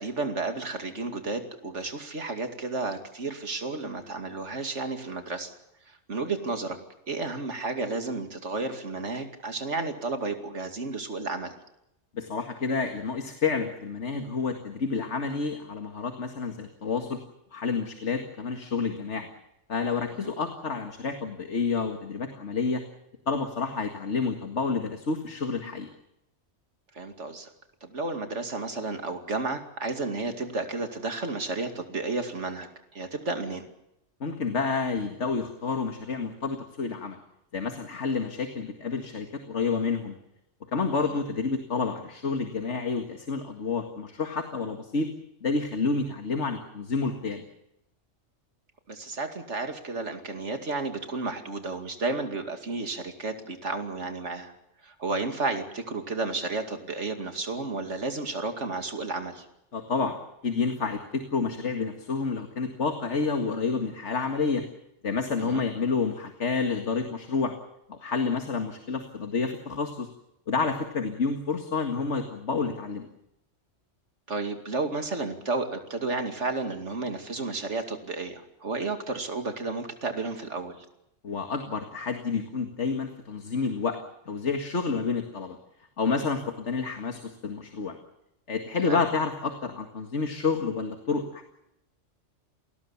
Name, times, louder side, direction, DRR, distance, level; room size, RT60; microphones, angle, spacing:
voice 1, 0.0-5.5 5.9-6.8 7.1-11.5 26.9-27.5 27.8-32.7 32.9-33.7 41.1-41.2 48.9-54.5 54.8-59.4 65.4-65.6 74.3-80.9 88.8-89.0, right 3 dB, 75° right, 6 dB, 2.8 m, -32 dB
voice 2, 12.1-17.2 17.5-19.3 19.7-22.8 23.3-25.9 34.2-37.2 37.5-40.2 40.7-45.1 45.4-47.4 59.7-60.2 60.4-64.6 65.0-67.5 67.9-70.1 70.5-73.1 81.2-84.0 84.3-85.6 86.0-88.0 88.5-91.5, left 4 dB, 75° left, 5 dB, 2.2 m, -29 dB
28.0 x 19.5 x 7.2 m, 0.83 s
omnidirectional pair, 1.2 m